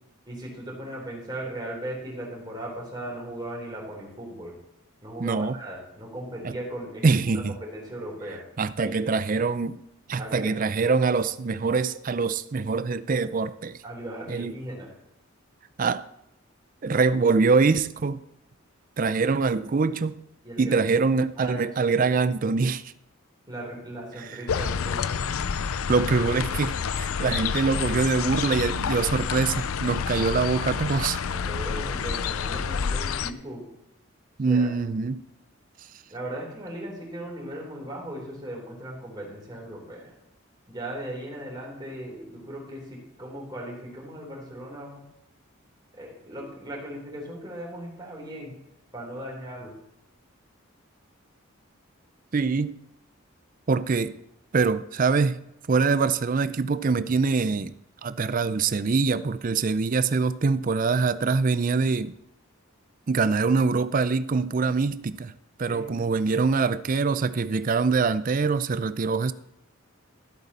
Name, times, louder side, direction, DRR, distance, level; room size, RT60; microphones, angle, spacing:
voice 1, 0.3-4.5 5.0-7.2 7.5-8.4 8.8-9.1 10.2-10.6 13.8-14.9 20.4-20.8 21.4-22.1 23.5-25.3 31.3-33.6 34.5-34.7 36.1-40.1 40.7-45.0 45.9-48.5 48.9-49.7 65.7-66.0, right 1 dB, 20° right, 3.5 m, -37 dB
voice 2, 5.2-5.5 6.4-6.5 7.0-7.6 8.6-9.8 10.1-13.8 14.3-14.5 15.8-16.0 16.8-18.2 19.0-20.2 20.6-22.9 25.9-31.2 34.4-35.2 52.3-52.8 53.7-54.2 54.5-55.4 55.7-57.7 58.0-62.2 63.1-65.3 65.6-69.3, right 4 dB, 40° right, 0.4 m, -24 dB
sound 1, 24.5-33.3, left 6 dB, 85° left, 0.5 m, -28 dB
14.0 x 8.1 x 4.1 m
head